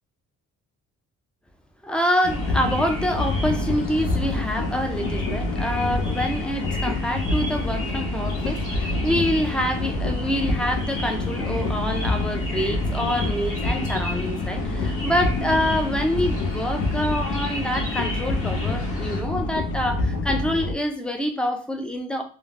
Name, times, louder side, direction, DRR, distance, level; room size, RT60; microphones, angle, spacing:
voice 1, 1.8-22.2, equal, 5° left, 4 dB, 0.4 m, -26 dB
sound 1, 2.2-20.8, left 2 dB, 85° left, 0.6 m, -27 dB
sound 2, 2.2-19.2, left 1 dB, 45° left, 1.1 m, -34 dB
3.1 x 2.1 x 2.4 m, 0.38 s
cardioid pair, 90°, 30 cm